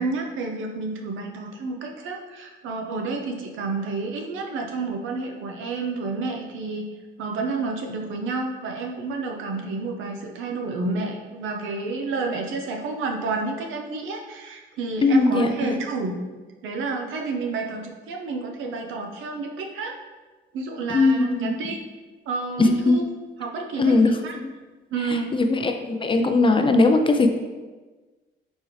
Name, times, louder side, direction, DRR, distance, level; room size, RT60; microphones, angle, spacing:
voice 1, 0.0-6.8 7.2-16.2 16.6-19.9 20.5-21.8 22.3-23.0 23.4-24.4 24.9-25.4, right 3 dB, 85° right, 2 dB, 0.6 m, -30 dB
voice 2, 15.0-15.8 20.9-21.5 22.6-23.0 23.8-24.2 25.3-27.3, left 3 dB, 25° left, 6 dB, 0.4 m, -19 dB
4.2 x 3.5 x 3.1 m, 1.3 s
cardioid pair, 90°, 20 cm